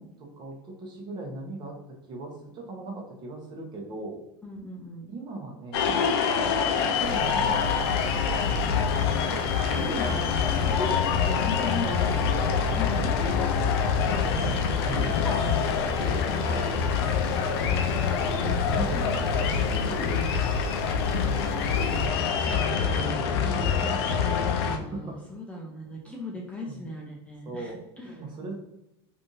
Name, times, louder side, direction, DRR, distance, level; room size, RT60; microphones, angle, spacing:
voice 1, 0.0-4.2 5.1-6.0 6.7-8.3 8.8-9.6 9.8-10.1 14.0-15.1 16.0-16.7 18.4-20.0 21.3-21.8 22.4-25.2 26.0-26.3 26.6-26.9 27.4-27.8 28.0-28.5, right 3 dB, 35° right, 0 dB, 0.9 m, -39 dB
voice 2, 4.4-5.1 9.6-12.3 12.8-13.1 14.8-15.4 19.4-20.4 24.6-28.3, left 2 dB, 10° left, -1 dB, 0.5 m, -37 dB
sound 1, 5.7-24.8, left 6 dB, 75° left, 0.5 m, -25 dB
indoor ambience, 7.0-22.1, left 1 dB, 70° right, 0.8 m, -37 dB
3.4 x 2.6 x 2.6 m, 0.87 s
supercardioid pair, 125°, 13 cm